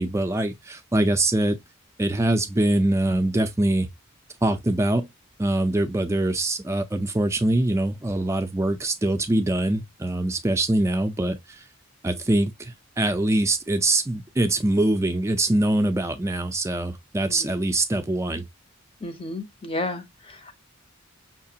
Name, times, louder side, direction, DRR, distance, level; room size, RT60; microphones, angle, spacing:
voice 1, 0.0-1.6 2.0-3.9 4.4-5.1 5.4-11.6 12.0-18.4, right 1 dB, 15° right, 0.4 m, -23 dB
voice 2, 19.0-20.5, left 2 dB, 30° left, 0.6 m, -32 dB
5.8 x 2.4 x 2.7 m
head